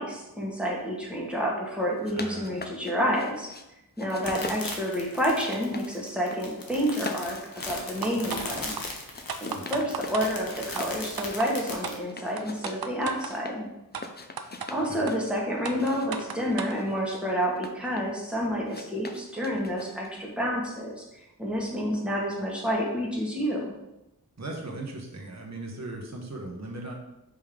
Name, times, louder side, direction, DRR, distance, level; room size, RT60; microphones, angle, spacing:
voice 1, 0.0-3.5 4.0-7.4 7.6-8.7 9.4-13.7 14.7-23.7, equal, 5° right, -3 dB, 1.8 m, -29 dB
sound 1, 1.8-3.7 4.0-5.9 6.2-6.7 7.0-11.0 11.3-13.6 13.9-15.2 15.7-18.2 18.7-20.2, left 3 dB, 30° left, 0.6 m, -42 dB
voice 2, 2.1-2.6 4.2-4.4 9.5-9.9 14.8-15.1 24.4-26.9, right 2 dB, 50° right, 0 dB, 1.1 m, -38 dB
sound 2, 4.1-12.0, left 2 dB, 70° left, 1.2 m, -38 dB
sound 3, 8.0-8.5 8.8-8.9 9.3-10.3 10.7-10.8 11.2-11.5 11.8-12.0 12.4-13.3 13.9-14.0 14.4-14.7 15.1-15.2 15.6-16.8, right 6 dB, 85° right, 0.6 m, -34 dB
5.4 x 3.7 x 5.1 m, 0.90 s
wide cardioid pair, 75°, 36 cm